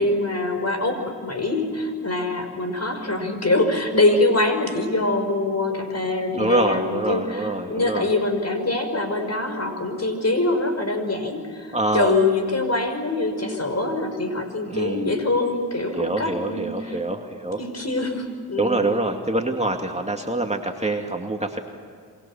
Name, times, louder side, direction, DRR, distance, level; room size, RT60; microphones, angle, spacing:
voice 1, 0.0-17.0 17.6-18.9, left 2 dB, 35° left, 7 dB, 5.5 m, -24 dB
voice 2, 6.3-8.1 11.7-12.2 14.7-15.1 15.9-17.6 18.6-21.6, right 2 dB, 15° right, 3 dB, 2.5 m, -25 dB
27.5 x 24.5 x 7.3 m, 2.2 s
supercardioid pair, 45°, 42 cm